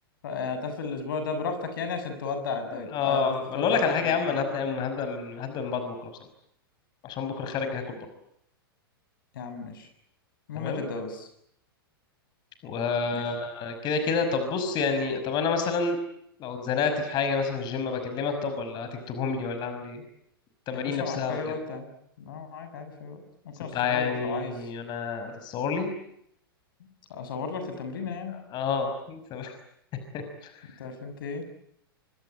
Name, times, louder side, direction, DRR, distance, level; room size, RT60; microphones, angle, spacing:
voice 1, 0.2-4.1 9.3-9.9 10.5-11.3 13.1-13.2 20.7-21.9 22.2-23.2 23.6-24.7 27.1-28.4 30.8-31.4, left 4 dB, 60° left, 8 dB, 6.7 m, -34 dB
voice 2, 2.7-6.1 7.0-8.0 10.5-10.8 12.6-16.0 16.4-20.0 20.7-21.4 23.7-25.9 28.3-29.5 30.1-30.5, left 5 dB, 35° left, 7 dB, 5.7 m, -29 dB
25.0 x 25.0 x 9.0 m, 0.75 s
figure-of-eight pair, 105°, 12 cm